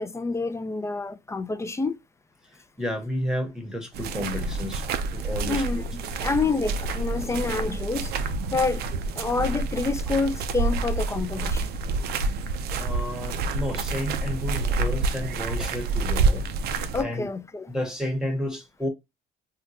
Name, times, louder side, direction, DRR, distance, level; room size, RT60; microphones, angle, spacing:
voice 1, 0.0-2.0 5.4-5.8 6.2-8.1 8.5-8.8 9.1-11.7 16.9-17.7, left 3 dB, 15° left, 0.3 m, -27 dB
voice 2, 2.8-4.8 5.1-5.9 6.1-6.3 12.7-16.4 17.0-17.3 17.7-18.9, left 1 dB, 5° right, 0.9 m, -31 dB
sound 1, 3.9-17.0, right 3 dB, 70° right, 0.5 m, -28 dB
3.7 x 2.2 x 2.6 m
cardioid pair, 110°, 17 cm